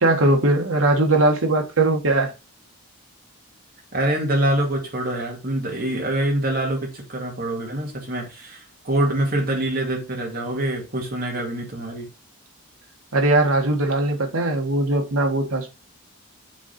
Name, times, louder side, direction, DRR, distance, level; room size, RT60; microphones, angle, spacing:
voice 1, 0.0-2.3 13.1-15.7, right 2 dB, 80° right, 1.5 m, -20 dB
voice 2, 3.9-12.1, right 1 dB, 45° right, 2.3 m, -25 dB
7.2 x 3.9 x 4.2 m
head